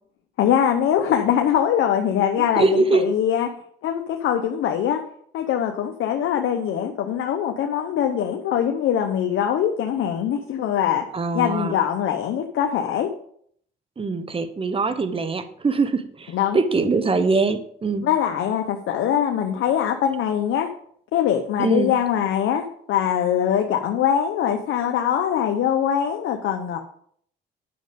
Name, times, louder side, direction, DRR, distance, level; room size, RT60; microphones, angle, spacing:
voice 1, 0.4-3.5 3.8-5.0 5.3-11.0 11.3-13.1 16.3-16.6 18.0-20.7 21.1-26.8, left 9 dB, 80° left, 4 dB, 0.9 m, -22 dB
voice 2, 2.4-3.0 11.1-11.8 14.0-18.1 21.6-21.9, right 3 dB, 30° right, 10 dB, 1.1 m, -22 dB
9.9 x 6.5 x 5.2 m, 0.64 s
cardioid pair, 90°, 20 cm